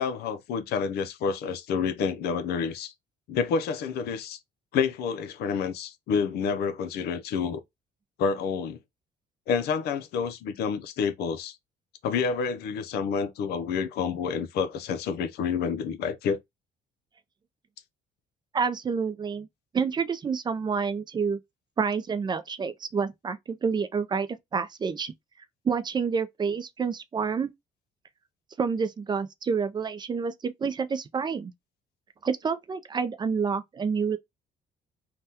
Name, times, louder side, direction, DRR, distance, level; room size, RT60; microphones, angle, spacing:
voice 1, 0.0-2.9 3.3-4.4 4.7-7.6 8.2-8.8 9.5-11.6 12.0-16.4, left 6 dB, 75° left, 0.6 m, -28 dB
voice 2, 18.5-19.5 19.7-21.4 21.8-25.1 25.6-27.5 28.6-31.5 32.2-34.2, right 5 dB, 25° right, 0.4 m, -28 dB
3.4 x 2.2 x 2.7 m
cardioid pair, 110°, 17 cm